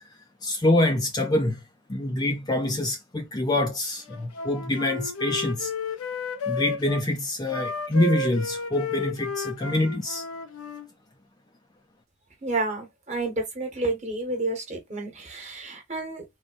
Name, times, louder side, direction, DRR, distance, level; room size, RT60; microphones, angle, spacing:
voice 1, 0.4-1.6 1.9-5.7 6.5-10.2, left 1 dB, 20° left, 0.4 m, -25 dB
Wind instrument woodwind instrument, 4.1-7.0 7.5-10.9, left 3 dB, 90° left, 0.6 m, -33 dB
voice 2, 12.4-16.2, right 2 dB, 30° right, 1.2 m, -30 dB
3.9 x 2.2 x 2.4 m
head